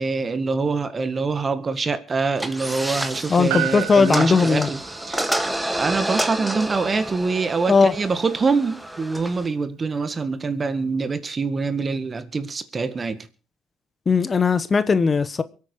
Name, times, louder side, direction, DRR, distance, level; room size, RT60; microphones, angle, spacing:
voice 1, 0.0-4.8 5.1-5.3 5.7-13.3, right 4 dB, 35° right, 1.8 m, -25 dB
sound 1, 2.4-9.5, right 1 dB, 10° right, 1.9 m, -29 dB
voice 2, 3.3-4.7 7.7-7.9 14.1-15.4, left 5 dB, 35° left, 1.0 m, -18 dB
Piano, 3.5-8.1 8.3-8.4, right 15 dB, 90° right, 1.3 m, -34 dB
23.5 x 8.7 x 4.7 m
supercardioid pair, 70°, 0 cm